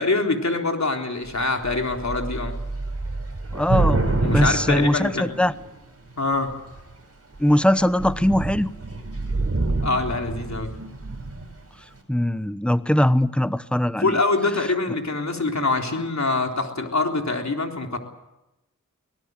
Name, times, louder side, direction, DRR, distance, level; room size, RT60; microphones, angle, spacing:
voice 1, 0.0-2.5 4.2-5.3 6.2-6.6 9.8-10.7 14.0-18.0, left 3 dB, 60° left, 2 dB, 3.7 m, -24 dB
Thunder / Rain, 1.2-1.4 1.6-5.8 6.5-6.9 7.4-7.5 7.8-11.5, right 2 dB, 50° right, 5.2 m, -27 dB
voice 2, 3.5-5.5 7.4-8.7 12.1-14.2, left 1 dB, 5° left, 14 dB, 1.0 m, -21 dB
24.5 x 19.0 x 7.9 m, 0.92 s
wide cardioid pair, 55°, 31 cm